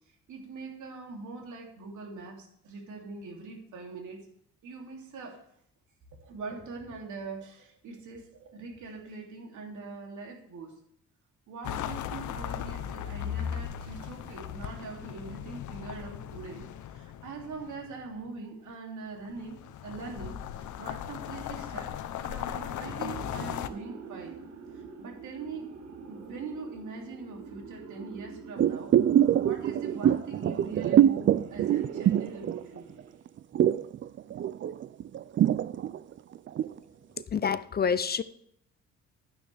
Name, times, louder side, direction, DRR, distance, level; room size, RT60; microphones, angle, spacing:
voice 1, 0.3-4.3 4.6-5.4 6.1-10.7 11.5-22.0 22.2-24.4 24.7-25.7 26.1-29.0 29.4-32.9, right 4 dB, 75° right, 1 dB, 2.9 m, -42 dB
sound 1, 11.6-18.1 19.3-23.7, left 10 dB, 75° left, 0.8 m, -37 dB
sound 2, 22.2-33.4, right 5 dB, 60° right, 1.6 m, -47 dB
sound 3, 28.6-33.0 33.3-36.8 37.2-37.3, right 10 dB, 40° right, 0.4 m, -24 dB
voice 2, 37.3-38.2, left 6 dB, 35° left, 15 dB, 0.5 m, -27 dB
11.5 x 9.6 x 3.4 m, 0.71 s
cardioid pair, 90°, 30 cm